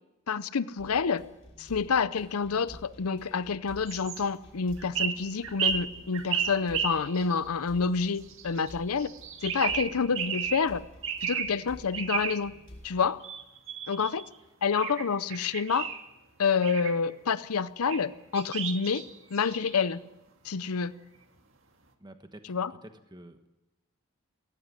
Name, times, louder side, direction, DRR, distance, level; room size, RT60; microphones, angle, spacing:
voice 1, 0.3-1.3 1.6-9.1 9.4-10.8 11.2-12.5 12.8-13.2 13.9-14.2 14.6-15.9 16.4-19.0 19.3-20.0 20.4-20.9 22.5-22.7, left 5 dB, 75° left, 16 dB, 0.6 m, -28 dB
sound 1, 0.8-13.1, equal, 55° left, 5.1 m, -51 dB
sound 2, 3.9-4.2 4.8-7.5 8.2-8.7 9.0-10.7 11.0-11.6 11.9-12.5 13.2-14.3 14.7-16.0 16.6-17.0 17.9-18.0 18.3-19.9, right 7 dB, 60° right, 1.9 m, -33 dB
voice 2, 22.0-22.5 22.8-23.5, right 1 dB, 20° right, 7 dB, 1.2 m, -49 dB
17.5 x 15.5 x 9.9 m, 1.0 s
head